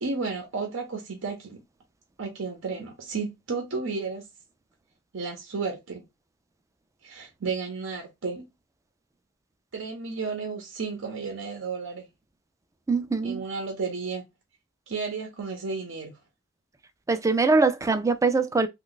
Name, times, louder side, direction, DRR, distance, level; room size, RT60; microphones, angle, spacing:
voice 1, 0.0-1.6 2.2-4.3 5.1-6.1 7.0-8.4 9.7-12.1 13.2-14.3 14.9-16.1, right 4 dB, 70° right, 0.7 m, -32 dB
voice 2, 12.9-13.4 17.1-18.7, right 3 dB, 15° right, 0.4 m, -22 dB
3.1 x 2.3 x 3.9 m
head